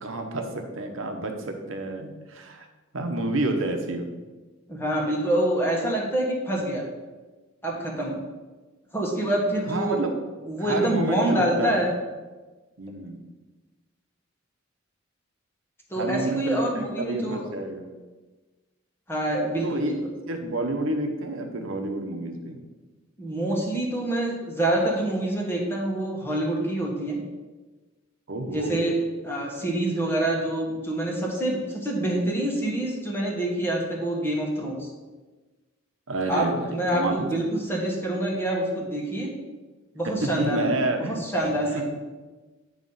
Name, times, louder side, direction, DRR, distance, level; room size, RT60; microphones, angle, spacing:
voice 1, 0.0-2.7 2.9-4.1 9.7-10.1 10.6-11.9 12.8-13.2 15.9-17.9 19.6-19.9 20.3-22.6 28.3-28.8 36.1-37.2 40.0-41.8, right 2 dB, 80° right, 4 dB, 0.9 m, -29 dB
voice 2, 4.7-6.9 7.6-8.2 8.9-10.0 10.4-11.9 15.9-17.5 19.1-19.9 23.2-27.2 28.5-28.9 29.2-34.9 36.3-39.3 39.9-40.7 41.0-41.8, right 1 dB, 10° left, -2 dB, 1.3 m, -26 dB
9.1 x 3.1 x 5.5 m, 1.3 s
head